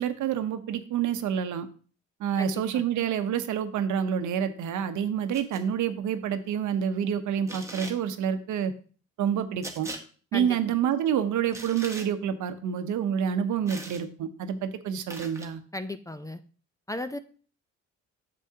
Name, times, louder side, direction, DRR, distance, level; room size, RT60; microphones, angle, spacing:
voice 1, 0.0-1.7 2.2-8.7 9.2-9.9 10.3-15.6, right 8 dB, 75° right, 10 dB, 0.8 m, -28 dB
voice 2, 2.4-2.8 10.3-10.5 15.7-16.4 16.9-17.2, left 2 dB, 10° left, 12 dB, 0.4 m, -35 dB
sound 1, 5.3-5.6 7.5-8.0 9.6-10.0 11.5-12.1 13.7-14.0 15.1-15.5, right 2 dB, 10° right, 1.3 m, -40 dB
8.3 x 6.9 x 2.8 m, 0.40 s
cardioid pair, 90°, 30 cm